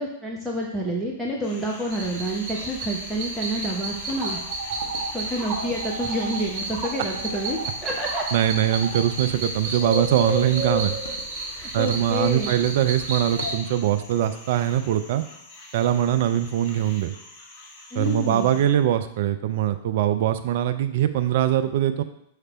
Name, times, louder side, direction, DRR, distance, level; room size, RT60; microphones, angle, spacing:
voice 1, 0.0-4.4 5.1-8.2 11.5-12.5 17.9-18.5, right 1 dB, ahead, -4 dB, 1.0 m, -28 dB
sound 1, 1.4-18.6, left 2 dB, 30° left, 1.9 m, -46 dB
sound 2, 1.9-13.5, right 2 dB, 25° right, 2.2 m, -31 dB
sound 3, 3.5-6.0 6.3-8.3 8.6-9.0 9.5-11.5 11.8-12.3 12.6-13.0 13.3-14.6, left 4 dB, 75° left, 0.6 m, -44 dB
voice 2, 8.3-11.0 11.7-15.2 15.7-17.1 17.9-22.0, right 11 dB, 55° right, 9 dB, 0.4 m, -22 dB
6.4 x 3.3 x 4.9 m, 0.74 s
figure-of-eight pair, 100°, 0 cm